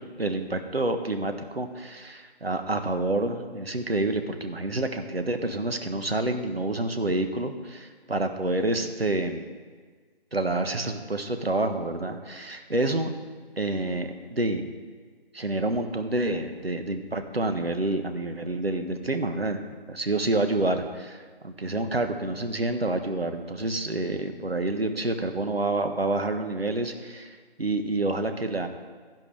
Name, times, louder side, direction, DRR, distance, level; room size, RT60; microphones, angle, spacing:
voice 1, 0.2-9.4 10.3-13.2 13.6-14.6 15.3-19.6 19.9-28.7, right 2 dB, 70° right, 6 dB, 1.4 m, -28 dB
16.5 x 11.0 x 3.4 m, 1.5 s
figure-of-eight pair, 165°, 31 cm